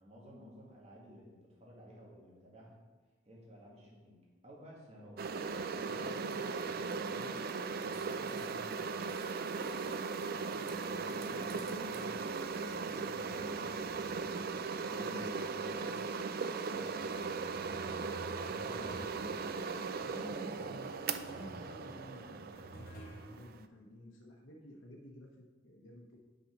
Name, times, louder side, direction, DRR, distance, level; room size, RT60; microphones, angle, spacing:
voice 1, 0.0-2.9 3.2-7.4 7.7-9.2 10.2-14.1 14.4-16.0 16.6-20.7 23.1-23.6, equal, 35° right, -4 dB, 1.9 m, -55 dB
sound 1, 5.2-23.6, right 4 dB, 50° right, 0.4 m, -38 dB
sound 2, 5.4-10.4 10.7-15.4 16.0-16.1 16.9-23.3, right 1 dB, 50° left, 1.3 m, -56 dB
sound 3, 6.3-12.9, right 6 dB, 80° right, 1.0 m, -60 dB
voice 2, 7.1-7.5 8.1-8.6 20.0-23.0 23.3-26.2, equal, 85° left, -1 dB, 1.1 m, -52 dB
5.9 x 5.4 x 6.0 m, 1.3 s
head